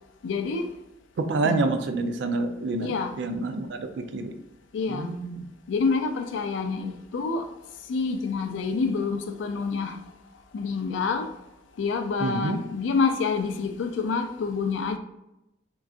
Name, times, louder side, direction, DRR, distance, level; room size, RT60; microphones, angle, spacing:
voice 1, 0.2-0.7 1.4-1.6 2.8-3.1 4.7-5.1 5.7-7.5 7.9-10.0 10.5-11.3 11.8-15.0, left 4 dB, 75° left, 7 dB, 0.3 m, -27 dB
voice 2, 1.2-4.3 4.9-5.4 12.2-12.6, right 3 dB, 65° right, 7 dB, 0.3 m, -28 dB
3.7 x 2.3 x 2.4 m, 0.90 s
head